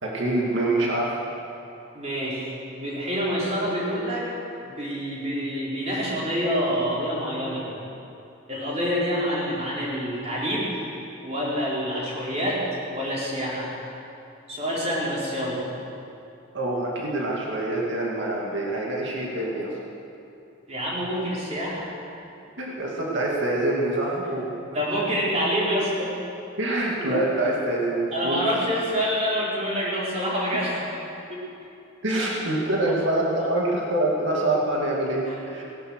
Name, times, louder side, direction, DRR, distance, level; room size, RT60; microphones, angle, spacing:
voice 1, 0.0-1.1 16.5-19.7 22.6-24.5 26.6-28.6 32.0-35.6, right 1 dB, 60° right, -3 dB, 2.4 m, -25 dB
voice 2, 1.9-4.3 4.6-7.8 8.5-10.8 11.2-12.6 12.9-13.7 14.5-15.7 20.7-21.9 24.7-26.1 27.4-27.5 28.1-30.8 31.3-31.4 32.9-33.5 35.3-35.4, equal, 30° right, -7 dB, 4.2 m, -27 dB
18.5 x 11.0 x 6.5 m, 2.7 s
head